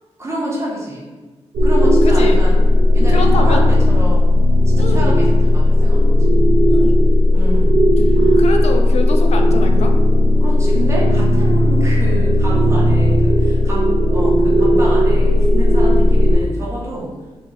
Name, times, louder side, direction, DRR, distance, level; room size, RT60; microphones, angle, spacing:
voice 1, 0.2-1.1 1.6-2.6 2.9-4.3 4.8-6.2 7.3-7.9 8.2-8.4 10.4-17.1, right 1 dB, 25° right, -5 dB, 1.3 m, -28 dB
sound 1, 1.5-16.4, left 1 dB, 85° right, 0.6 m, -13 dB
voice 2, 2.0-2.4 3.1-3.6 4.8-5.2 6.7-7.1 8.0-9.9, left 3 dB, 75° left, 3 dB, 0.5 m, -25 dB
4.0 x 2.9 x 4.0 m, 1.3 s
wide cardioid pair, 100°, 11 cm